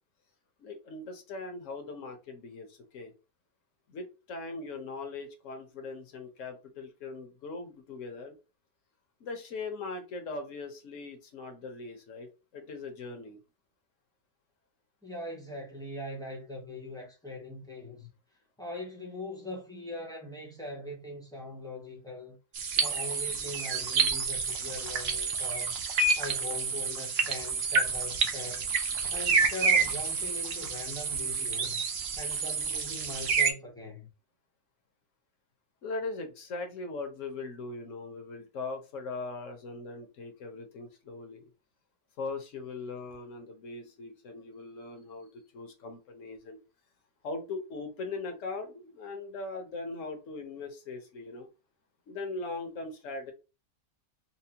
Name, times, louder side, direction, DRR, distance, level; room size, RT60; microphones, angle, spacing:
voice 1, 0.6-3.1 3.9-8.3 9.2-13.4 35.8-41.5 42.2-46.6 47.2-51.5 52.1-53.3, left 3 dB, 55° left, 1.0 m, -40 dB
voice 2, 15.0-18.1 18.6-22.4 22.8-25.7 26.2-28.7 29.1-31.8 32.2-34.1, left 1 dB, 5° left, 0.3 m, -41 dB
sound 1, 22.5-33.5, right 4 dB, 65° right, 0.6 m, -29 dB
4.2 x 2.1 x 2.8 m
omnidirectional pair, 1.8 m